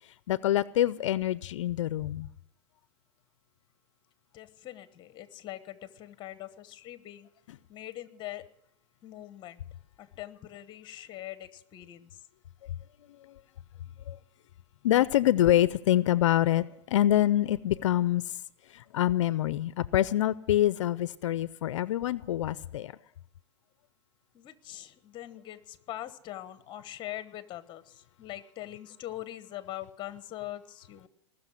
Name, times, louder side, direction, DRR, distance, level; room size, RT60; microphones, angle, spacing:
voice 1, 0.3-2.3 14.1-14.2 14.8-16.6 16.9-18.2 18.9-22.9, left 13 dB, 80° left, 18 dB, 0.5 m, -25 dB
voice 2, 4.3-7.3 7.7-8.4 9.0-9.6 10.0-12.2 24.3-31.1, left 14 dB, 30° left, 13 dB, 1.1 m, -42 dB
19.5 x 6.5 x 10.0 m, 0.79 s
hypercardioid pair, 125°, 15 cm